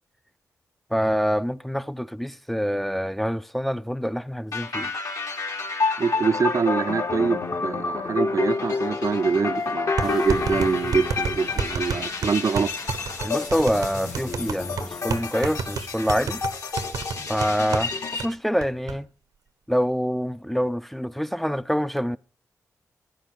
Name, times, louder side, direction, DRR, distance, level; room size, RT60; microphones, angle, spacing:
voice 1, 0.9-4.9 13.2-16.4 17.3-19.1 19.7-22.2, equal, 5° left, 0.6 m, -26 dB
sound 1, 4.5-18.3, left 4 dB, 65° left, 3.0 m, -29 dB
voice 2, 6.0-12.7, right 5 dB, 60° right, 0.7 m, -24 dB
sound 2, 10.0-15.7, left 4 dB, 85° left, 2.2 m, -46 dB
sound 3, 10.0-17.9 18.2-18.3 18.6-19.0, right 5 dB, 85° right, 1.3 m, -30 dB
13.0 x 9.8 x 6.7 m
supercardioid pair, 45°, 6 cm